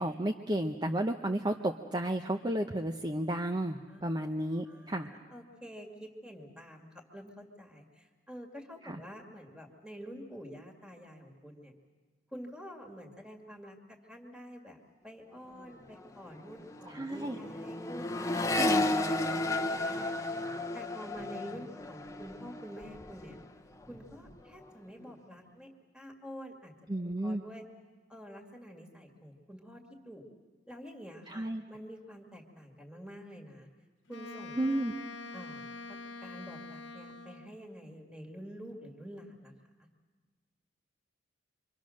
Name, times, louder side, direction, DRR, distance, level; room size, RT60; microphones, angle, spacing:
voice 1, 0.0-5.1 8.8-9.0 16.9-17.4 18.5-18.9 26.9-27.4 31.3-31.6 34.6-34.9, right 1 dB, 20° right, 3 dB, 0.8 m, -32 dB
voice 2, 4.6-6.9 7.1-11.7 12.3-14.8 15.0-20.2 20.7-23.4 23.9-26.7 27.0-27.6 28.1-30.2 30.7-33.7 34.1-34.8 35.3-35.7 36.2-39.5, equal, 5° right, 1 dB, 2.1 m, -48 dB
Accelerating revving vroom, 15.4-15.7 15.9-23.5 23.8-24.4, left 2 dB, 15° left, 0.8 m, -34 dB
Wind instrument woodwind instrument, 34.1-37.6, left 3 dB, 70° left, 1.0 m, -45 dB
27.0 x 25.0 x 6.4 m, 1.4 s
head